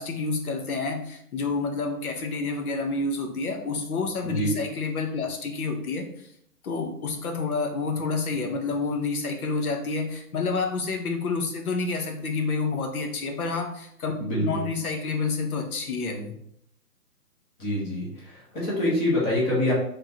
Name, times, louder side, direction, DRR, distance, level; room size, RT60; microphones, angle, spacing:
voice 1, 0.0-6.3 6.6-14.1 14.4-16.3, left 4 dB, 60° left, 4 dB, 1.1 m, -29 dB
voice 2, 14.2-14.6 17.6-19.7, left 1 dB, 15° left, -6 dB, 0.9 m, -26 dB
3.6 x 3.5 x 2.9 m, 0.70 s
hypercardioid pair, 155°, 48 cm